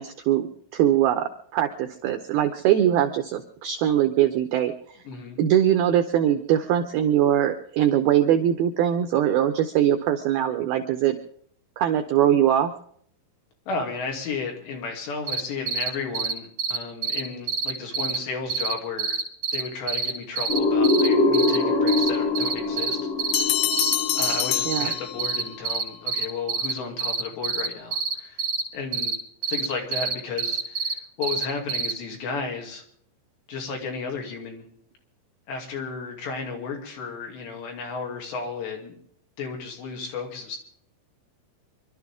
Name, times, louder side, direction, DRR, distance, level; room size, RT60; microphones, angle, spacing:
voice 1, 0.0-4.7 5.4-11.2 11.8-12.7 24.7-24.9, right 11 dB, 85° right, 7 dB, 2.1 m, -22 dB
voice 2, 5.1-5.4 13.7-19.2 19.5-23.0 23.3-23.5 24.1-28.4 28.7-29.2 29.5-32.8 33.5-34.6 35.5-39.0 39.4-40.6, left 4 dB, 65° left, 1 dB, 4.7 m, -33 dB
sound 1, 15.3-15.4 15.7-15.9 16.1-16.3 16.6-16.8 17.0-17.2 17.5-18.2 18.5-18.7 19.0-19.6 19.9-21.1 21.3-21.6 21.9-22.1 22.3-23.4 23.7-24.4 24.7-24.9 25.2-26.7 27.0-28.6 28.9-29.1 29.4-29.7 29.9-30.9 31.2-31.9, right 6 dB, 65° right, 0.8 m, -26 dB
sound 2, 20.5-25.2, left 3 dB, 45° left, 6.2 m, -23 dB
sound 3, 23.3-25.6, left 13 dB, 90° left, 2.3 m, -26 dB
26.0 x 12.5 x 3.6 m, 0.62 s
omnidirectional pair, 5.6 m